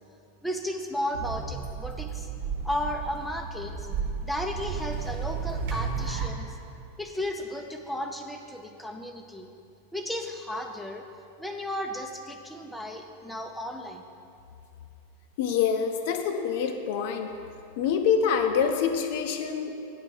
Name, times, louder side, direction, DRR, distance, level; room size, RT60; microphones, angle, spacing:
voice 1, 0.4-2.3 2.6-3.9 4.2-6.6 7.0-9.5 9.9-11.1 11.4-14.1, left 1 dB, 5° left, 3 dB, 0.5 m, -34 dB
sound 1, 1.1-6.3, right 6 dB, 50° right, 1.1 m, -33 dB
voice 2, 15.4-17.3 17.8-19.7, left 7 dB, 50° left, 6 dB, 0.5 m, -26 dB
8.7 x 3.5 x 6.3 m, 2.6 s
figure-of-eight pair, 90°, 0 cm